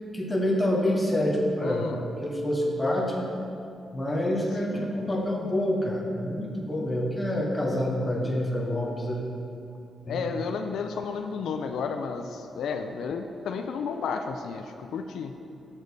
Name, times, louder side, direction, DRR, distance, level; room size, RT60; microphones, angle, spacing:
voice 1, 0.1-1.9 2.2-3.3 3.9-9.3 10.0-10.2, left 1 dB, 10° left, -2 dB, 0.9 m, -27 dB
voice 2, 1.6-2.0 4.7-4.9 10.1-15.3, left 5 dB, 70° left, 6 dB, 0.3 m, -32 dB
7.1 x 6.5 x 4.0 m, 2.6 s
wide cardioid pair, 175°, 0 cm